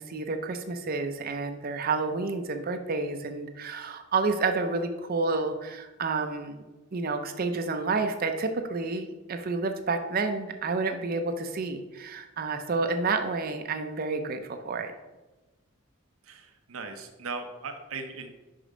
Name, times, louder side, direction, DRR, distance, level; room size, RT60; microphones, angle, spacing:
voice 1, 0.0-6.6 6.9-14.9, right 3 dB, 45° right, 7 dB, 0.5 m, -30 dB
voice 2, 16.2-18.3, right 4 dB, 85° right, 5 dB, 0.8 m, -38 dB
5.3 x 5.1 x 4.9 m, 1.2 s
head